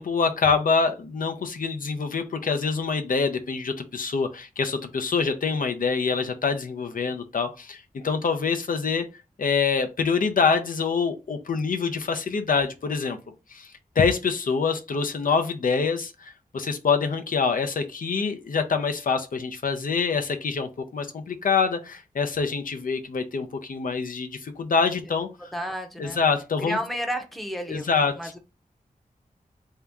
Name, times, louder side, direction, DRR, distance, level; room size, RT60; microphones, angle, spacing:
voice 1, 0.0-9.0 9.4-13.2 13.5-13.7 14.0-25.3 26.0-26.8 27.7-28.1, left 5 dB, 70° left, 0.6 m, -25 dB
voice 2, 25.5-26.2 26.6-28.4, equal, ahead, 0.7 m, -32 dB
3.5 x 2.8 x 3.4 m
wide cardioid pair, 95°, 15 cm